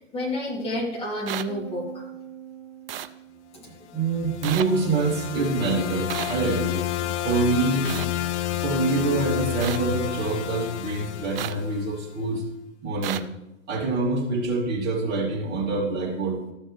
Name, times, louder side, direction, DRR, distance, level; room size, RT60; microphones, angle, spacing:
voice 1, 0.0-2.1 3.5-3.7, left 1 dB, 15° left, -2 dB, 2.7 m, -30 dB
sound 1, 1.3-1.4 2.9-3.1 4.4-4.6 6.1-6.3 7.8-8.1 9.6-9.8 11.4-11.5 13.0-13.2, right 11 dB, 45° right, 0.6 m, -31 dB
sound 2, 1.5-4.0, right 8 dB, 75° right, 1.3 m, -43 dB
sound 3, 3.9-12.1, left 13 dB, 60° left, 0.6 m, -31 dB
voice 2, 3.9-6.8 7.2-7.9 8.6-12.4 12.8-13.3 13.7-16.4, right 3 dB, 25° right, -4 dB, 3.0 m, -25 dB
14.0 x 6.4 x 3.3 m, 0.91 s
figure-of-eight pair, 115°, 39 cm